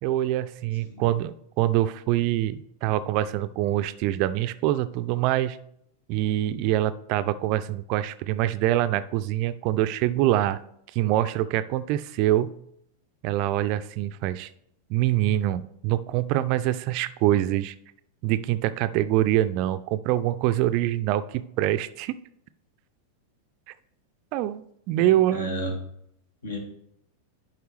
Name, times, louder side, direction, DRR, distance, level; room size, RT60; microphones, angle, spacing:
voice 1, 0.0-5.6 6.1-10.6 10.9-12.5 13.2-14.5 14.9-17.7 18.2-22.2 24.3-25.7, right 13 dB, 45° right, 13 dB, 0.4 m, -25 dB
voice 2, 25.0-25.7 26.4-26.6, equal, 70° left, 4 dB, 1.7 m, -33 dB
11.0 x 4.7 x 3.2 m, 0.73 s
figure-of-eight pair, 90°, 0 cm